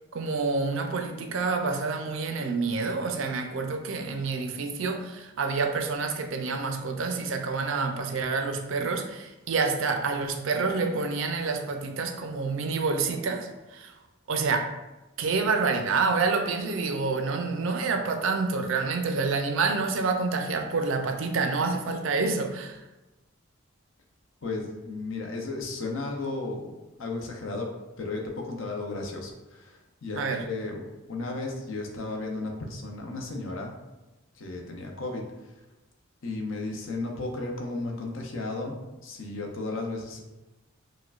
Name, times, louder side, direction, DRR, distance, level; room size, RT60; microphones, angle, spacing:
voice 1, 0.1-13.9 14.3-14.7 15.2-22.8 30.1-30.4, right 4 dB, 70° right, 5 dB, 0.4 m, -28 dB
voice 2, 24.4-27.7 28.0-30.8 31.1-33.7 34.3-35.5 36.2-40.2, left 3 dB, 70° left, 1 dB, 0.6 m, -34 dB
4.8 x 2.2 x 2.3 m, 1.1 s
head